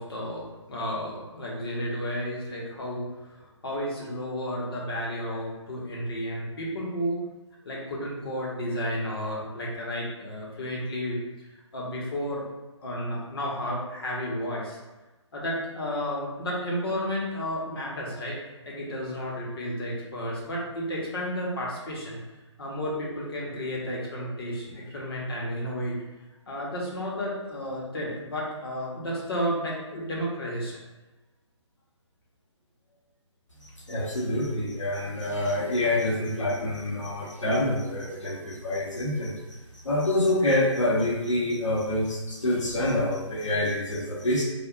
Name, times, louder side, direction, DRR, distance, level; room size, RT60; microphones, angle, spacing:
voice 1, 0.0-7.2 7.6-11.2 11.7-12.4 12.8-14.8 15.3-18.4 18.6-22.2 22.6-26.0 26.5-30.7, equal, 50° left, -4 dB, 1.0 m, -32 dB
voice 2, 33.9-44.4, left 1 dB, 75° left, -4 dB, 1.0 m, -27 dB
3.4 x 2.4 x 2.5 m, 1.1 s
figure-of-eight pair, 140°, 16 cm